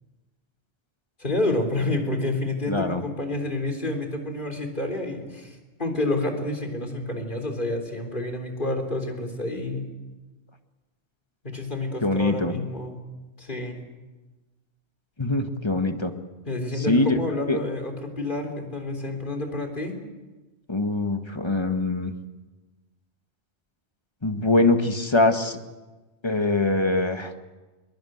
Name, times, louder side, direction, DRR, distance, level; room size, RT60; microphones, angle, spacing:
voice 1, 1.2-9.9 11.4-13.0 13.4-13.8 16.5-20.0, left 2 dB, 45° left, 3 dB, 3.9 m, -29 dB
voice 2, 2.7-3.0 12.0-12.5 15.2-16.1 16.9-17.2 17.5-17.6 20.7-22.1 24.2-25.6 26.2-27.3, left 2 dB, 25° left, 6 dB, 1.8 m, -23 dB
22.5 x 22.0 x 8.0 m, 1.2 s
omnidirectional pair, 1.1 m